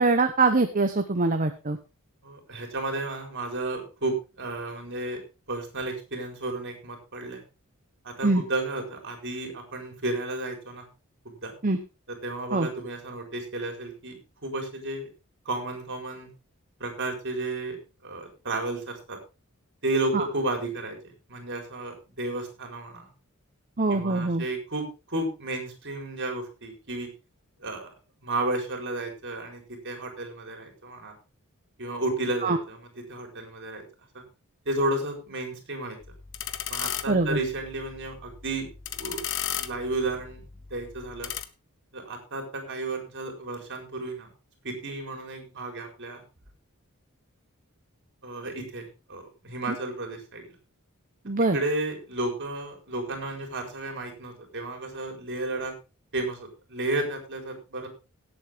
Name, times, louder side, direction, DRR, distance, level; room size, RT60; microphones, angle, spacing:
voice 1, 0.0-1.8 8.2-8.4 11.6-11.8 12.5-12.7 20.1-20.3 23.8-24.4 32.4-32.6 37.1-37.4 49.7-49.8 51.2-51.6, right 3 dB, 40° right, 7 dB, 1.0 m, -23 dB
voice 2, 2.2-5.2 5.5-7.4 8.0-10.8 11.2-11.5 12.1-15.1 15.4-16.3 16.8-17.8 18.0-19.2 19.8-21.0 21.3-23.1 23.9-27.1 27.6-27.9 28.2-31.1 31.8-33.8 34.1-34.2 34.6-36.0 36.7-39.2 39.6-40.4 40.7-41.3 41.9-44.3 44.6-46.2 48.2-50.5 51.5-55.7 56.1-57.9, right 2 dB, 55° right, 4 dB, 4.6 m, -32 dB
sound 1, 36.0-41.4, left 10 dB, 60° left, 1.1 m, -36 dB
17.5 x 8.1 x 3.6 m, 0.29 s
head